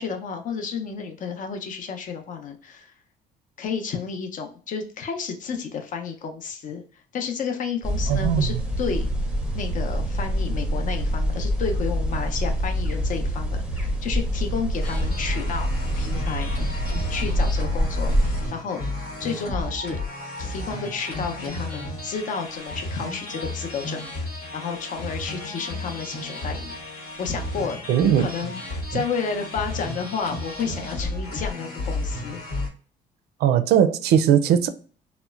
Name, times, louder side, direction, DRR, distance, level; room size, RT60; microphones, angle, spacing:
voice 1, 0.0-2.9 3.6-6.8 7.1-9.1 9.5-15.7 16.0-16.8 17.1-18.8 19.2-20.0 20.4-24.0 24.5-26.7 27.2-32.4, left 6 dB, 50° left, 0.6 m, -31 dB
winter afternoon birds, 7.8-18.5, equal, 5° right, 0.6 m, -25 dB
voice 2, 8.1-8.6 27.9-28.3 28.9-29.0 33.4-34.7, right 9 dB, 70° right, 0.4 m, -19 dB
sound 1, 14.8-32.7, left 2 dB, 70° left, 1.1 m, -33 dB
2.8 x 2.1 x 2.3 m
cardioid pair, 110°, 17 cm